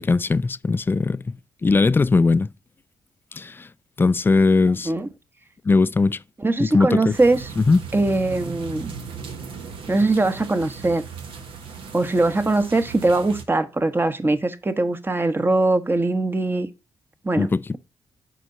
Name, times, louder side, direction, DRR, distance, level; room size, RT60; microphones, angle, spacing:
voice 1, 0.0-1.3 1.6-2.5 3.3-3.7 4.0-4.9 5.7-6.2 6.6-7.1 7.6-7.8 17.4-17.8, left 3 dB, 25° left, 0.3 m, -19 dB
voice 2, 6.4-7.5 7.9-8.9 9.9-11.0 11.9-16.7 17.2-17.5, right 2 dB, 25° right, 1.0 m, -21 dB
sound 1, 7.1-13.4, right 5 dB, 70° right, 1.1 m, -37 dB
6.2 x 4.6 x 5.2 m
hypercardioid pair, 45°, 9 cm